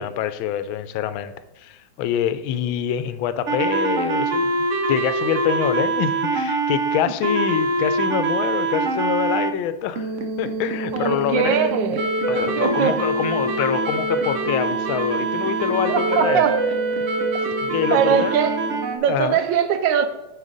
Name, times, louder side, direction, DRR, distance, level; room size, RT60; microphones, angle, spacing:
voice 1, 0.0-4.5 4.9-11.7 12.3-16.4 17.7-18.4 19.1-19.4, left 10 dB, 90° left, 13 dB, 1.4 m, -25 dB
sound 1, 3.5-9.5 10.0-19.0, right 2 dB, 55° right, 0.9 m, -24 dB
voice 2, 10.9-12.1 12.6-13.0 15.9-16.7 17.9-18.6 18.9-20.1, right 8 dB, 75° right, 9 dB, 1.3 m, -21 dB
9.5 x 5.2 x 3.9 m, 0.98 s
omnidirectional pair, 2.2 m